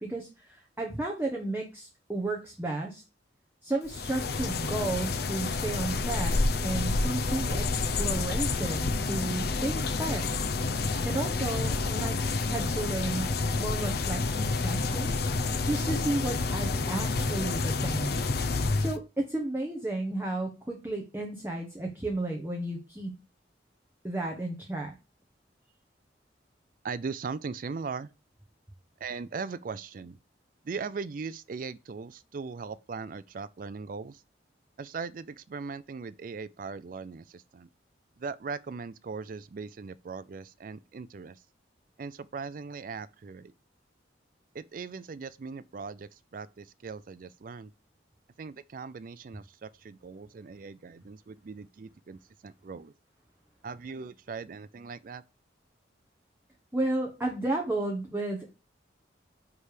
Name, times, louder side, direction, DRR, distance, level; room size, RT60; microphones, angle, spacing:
voice 1, 0.0-3.0 3.6-10.3 11.0-15.3 15.6-18.2 18.8-23.2 24.0-24.9 56.7-58.4, right 2 dB, 10° right, 1.1 m, -33 dB
sound 1, 3.9-19.0, left 3 dB, 60° left, 0.7 m, -29 dB
voice 2, 26.8-28.1 29.0-30.2 30.6-34.2 34.8-37.7 38.2-41.4 42.0-43.5 44.5-47.7 48.4-52.9 53.6-55.2, right 5 dB, 45° right, 0.4 m, -39 dB
9.6 x 3.4 x 4.9 m
head